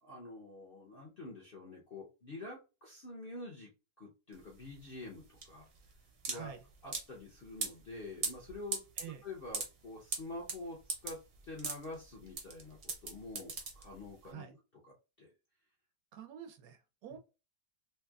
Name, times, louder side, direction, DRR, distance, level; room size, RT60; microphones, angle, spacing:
voice 1, 0.0-3.7 4.0-5.7 6.3-6.5 6.8-8.8 9.2-14.6 14.8-15.3, left 2 dB, 55° left, -3 dB, 0.6 m, -47 dB
sound 1, 4.3-14.3, right 4 dB, 55° right, 0.7 m, -41 dB
voice 2, 6.3-6.6 9.0-9.2 14.2-14.6 16.1-17.2, right 10 dB, 75° right, 7 dB, 1.1 m, -48 dB
3.4 x 2.8 x 2.3 m, 0.30 s
omnidirectional pair, 1.9 m